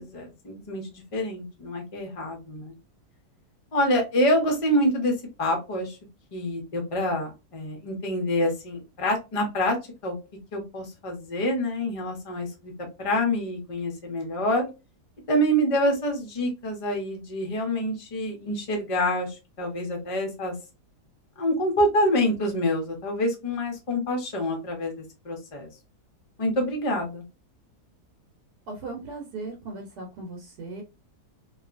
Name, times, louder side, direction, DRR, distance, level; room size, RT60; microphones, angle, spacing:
voice 1, 0.0-2.7 3.7-5.1 5.4-6.0 6.3-9.8 10.0-10.2 10.5-12.7 13.0-14.7 15.3-20.5 21.4-25.7 26.4-27.2, equal, 45° left, 2 dB, 0.4 m, -26 dB
voice 2, 28.7-30.8, right 3 dB, 80° right, 1 dB, 1.2 m, -37 dB
2.7 x 2.3 x 2.4 m, 0.27 s
omnidirectional pair, 1.7 m